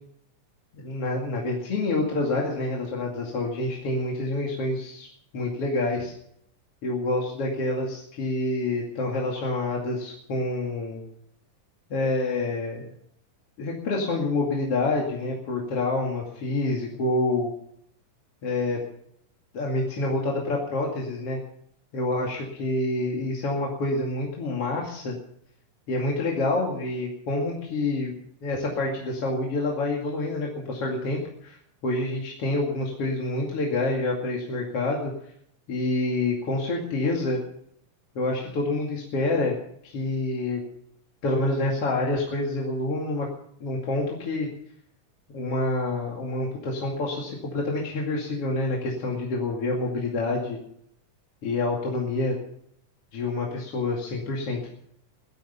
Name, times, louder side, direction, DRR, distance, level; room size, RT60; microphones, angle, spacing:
voice 1, 0.8-5.1 5.3-6.1 6.8-11.0 11.9-12.8 13.6-17.5 18.4-18.8 19.5-21.4 21.9-25.1 25.9-28.1 28.4-31.6 31.8-35.1 35.7-37.4 38.1-39.5 39.8-40.6 41.2-43.3 43.6-44.5 45.3-50.6 51.4-52.3 53.1-54.6, left 2 dB, 45° left, -2 dB, 3.1 m, -27 dB
20.5 x 12.0 x 5.7 m, 0.70 s
omnidirectional pair, 4.0 m